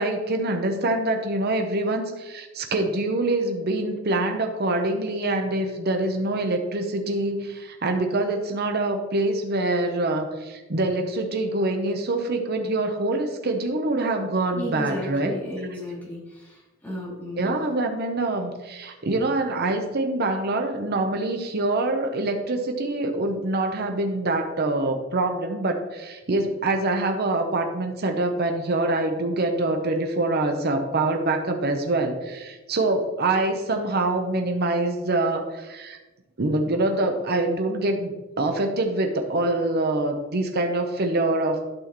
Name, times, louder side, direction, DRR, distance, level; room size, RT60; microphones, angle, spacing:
voice 1, 0.0-15.3 17.4-36.0 36.4-41.6, right 2 dB, 50° right, 5 dB, 0.8 m, -25 dB
voice 2, 14.5-17.6, left 1 dB, 10° left, -6 dB, 2.7 m, -34 dB
11.5 x 6.2 x 3.1 m, 1.2 s
head